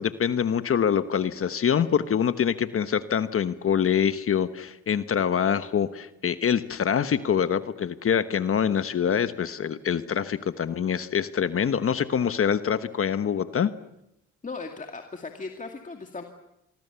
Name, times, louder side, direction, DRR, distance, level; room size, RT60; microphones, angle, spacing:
voice 1, 0.0-13.7, left 8 dB, 45° left, 12 dB, 1.1 m, -25 dB
voice 2, 14.4-16.2, left 4 dB, 25° left, 4 dB, 2.2 m, -37 dB
25.5 x 24.0 x 7.0 m, 0.82 s
cardioid pair, 90°, 30 cm